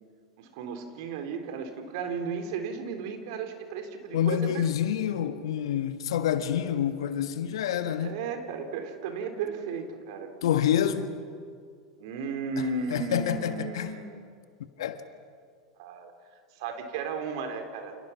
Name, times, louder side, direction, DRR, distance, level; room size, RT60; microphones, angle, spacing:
voice 1, 0.4-4.7 8.0-10.3 12.0-14.2 15.8-16.1 16.6-18.0, right 5 dB, 60° right, 3.9 m, -34 dB
voice 2, 4.1-8.2 10.4-11.1 12.6-13.9 14.8-15.0, left 9 dB, 70° left, 1.7 m, -27 dB
30.0 x 28.0 x 6.0 m
hypercardioid pair, 90°, 3 cm